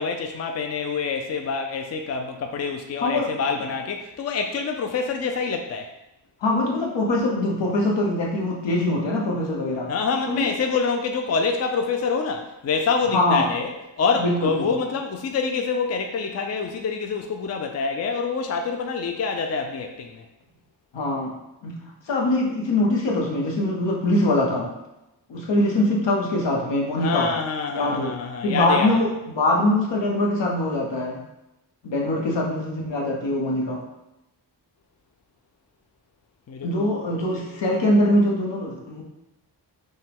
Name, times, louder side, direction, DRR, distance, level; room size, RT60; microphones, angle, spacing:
voice 1, 0.0-5.9 9.9-20.2 27.0-29.0 36.5-37.0 37.3-37.7, left 5 dB, 40° left, 4 dB, 0.4 m, -26 dB
voice 2, 3.0-3.3 6.4-9.9 10.3-10.5 13.1-13.5 14.2-14.8 20.9-21.4 21.6-21.7 22.1-24.7 25.3-27.3 27.7-28.2 28.4-29.1 29.4-31.2 31.8-33.8 36.6-39.0, left 1 dB, 80° left, -1 dB, 1.0 m, -23 dB
5.4 x 2.2 x 3.5 m, 0.93 s
wide cardioid pair, 100°, 43 cm